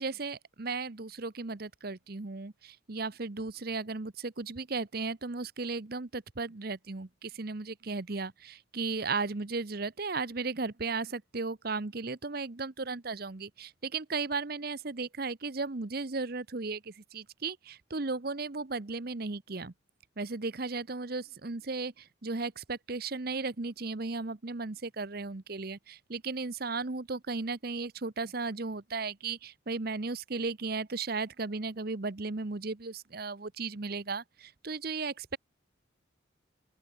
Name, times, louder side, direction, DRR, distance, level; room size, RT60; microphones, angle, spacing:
voice 1, 0.0-19.7 20.2-35.4, right 4 dB, 50° right, 0.9 m, -35 dB
open air
head